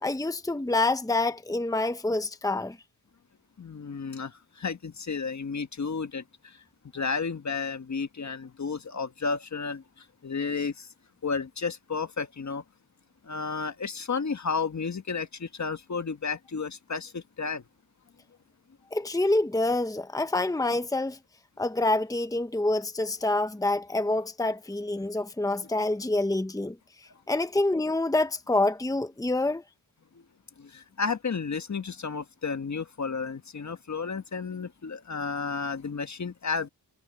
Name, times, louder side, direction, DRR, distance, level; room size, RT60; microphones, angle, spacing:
voice 1, 0.0-2.8 18.9-21.2 21.6-26.8 27.3-29.6, left 2 dB, 10° left, 1.2 m, -27 dB
voice 2, 3.6-6.6 6.9-10.9 11.2-12.6 13.2-17.6 30.6-36.7, left 5 dB, 45° left, 1.5 m, -32 dB
cardioid pair, 75°, 41 cm